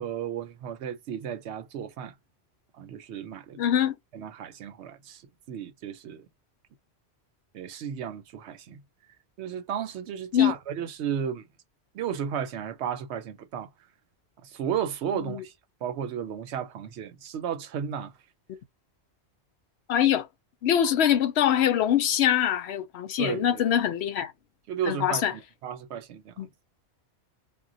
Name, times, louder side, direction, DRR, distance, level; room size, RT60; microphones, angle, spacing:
voice 1, 0.0-2.1 2.8-3.6 4.1-5.2 5.5-6.3 7.5-8.8 9.4-11.4 11.9-13.7 14.4-15.5 15.8-18.1 23.2-23.6 24.7-26.3, right 8 dB, 85° right, 0.9 m, -33 dB
voice 2, 3.6-3.9 10.3-10.5 15.2-15.4 19.9-20.3 20.6-24.3 24.9-25.3 26.4-26.5, left 10 dB, 75° left, 0.8 m, -23 dB
2.2 x 2.1 x 3.7 m
omnidirectional pair, 1.1 m